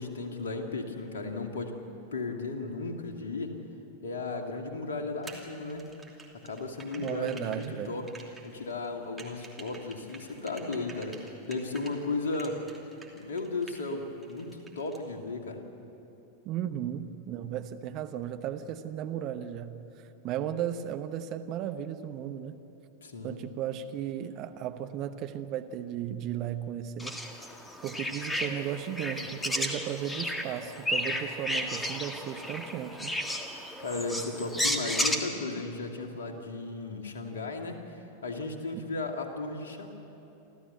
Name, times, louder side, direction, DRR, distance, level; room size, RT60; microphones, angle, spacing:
voice 1, 0.0-1.8 2.1-3.5 4.0-5.9 6.3-8.1 8.4-12.6 13.1-15.6 23.0-23.4 33.8-39.9, left 3 dB, 65° left, 4 dB, 2.2 m, -35 dB
sound 1, 5.2-11.9 12.3-13.9 14.2-15.0, right 3 dB, 5° right, 2.9 m, -49 dB
voice 2, 7.0-8.0 16.4-19.8 20.2-22.6 23.2-27.2 27.8-33.2 38.7-38.8, right 10 dB, 40° right, 8 dB, 1.0 m, -35 dB
sound 2, 27.0-35.2, left 1 dB, 10° left, 1.7 m, -33 dB
28.0 x 13.5 x 7.9 m, 3.0 s
figure-of-eight pair, 90°, 0 cm